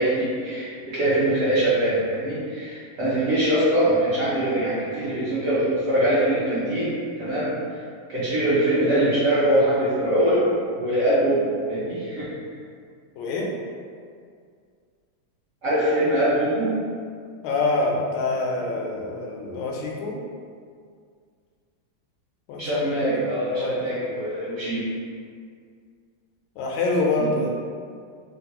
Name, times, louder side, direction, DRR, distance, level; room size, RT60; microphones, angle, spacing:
voice 1, 0.0-7.5 8.1-12.2 15.6-16.7 22.6-24.8 27.2-27.3, right 1 dB, 60° right, -11 dB, 0.9 m, -23 dB
voice 2, 13.1-13.6 17.4-20.2 22.5-23.2 23.5-23.8 26.6-27.5, left 2 dB, 85° left, -1 dB, 1.4 m, -26 dB
3.6 x 2.3 x 2.8 m, 2.1 s
omnidirectional pair, 2.2 m